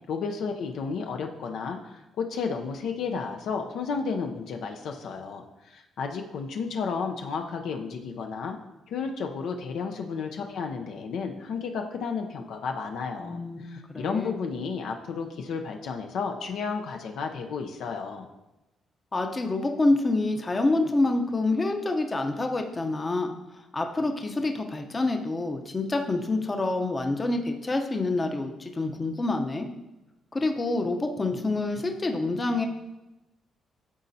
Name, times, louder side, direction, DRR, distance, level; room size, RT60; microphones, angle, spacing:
voice 1, 0.1-8.6 8.9-18.3, left 5 dB, 75° left, 3 dB, 0.6 m, -32 dB
voice 2, 13.2-14.3 19.1-23.3 23.7-29.7 30.3-32.7, left 2 dB, 25° left, 4 dB, 0.7 m, -27 dB
12.0 x 4.2 x 2.7 m, 1.0 s
cardioid pair, 90°, 0 cm